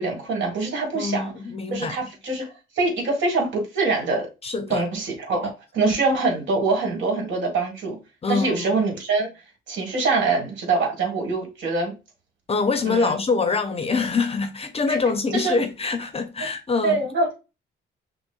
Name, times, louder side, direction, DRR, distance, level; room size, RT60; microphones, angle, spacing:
voice 1, 0.0-1.3 1.7-4.3 4.7-8.0 8.3-9.3 9.7-11.9 12.8-13.1 15.3-15.5 16.8-17.3, right 3 dB, 70° right, 1.6 m, -24 dB
voice 2, 0.9-2.1 4.4-4.8 8.2-8.8 12.5-17.0, left 4 dB, 30° left, 0.6 m, -25 dB
5.9 x 2.1 x 2.3 m
cardioid pair, 90°, 20 cm